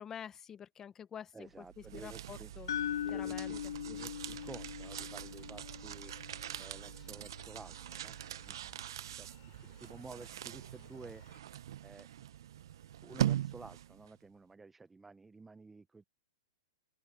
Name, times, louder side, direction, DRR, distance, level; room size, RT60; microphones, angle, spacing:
voice 1, 0.0-1.6 1.9-2.7 3.1-3.5, left 8 dB, 20° left, 0.9 m, -47 dB
voice 2, 1.3-2.5 3.0-6.1 6.6-8.8 9.1-9.3 9.6-11.2 11.8-12.1 13.0-16.0, right 3 dB, 10° right, 0.6 m, -52 dB
sound 1, 1.6-14.1, right 12 dB, 65° right, 0.6 m, -41 dB
sound 2, 2.7-6.7, left 10 dB, 80° left, 0.3 m, -40 dB
sound 3, 4.0-11.4, left 31 dB, 45° left, 3.3 m, -64 dB
open air
hypercardioid pair, 140°, 2 cm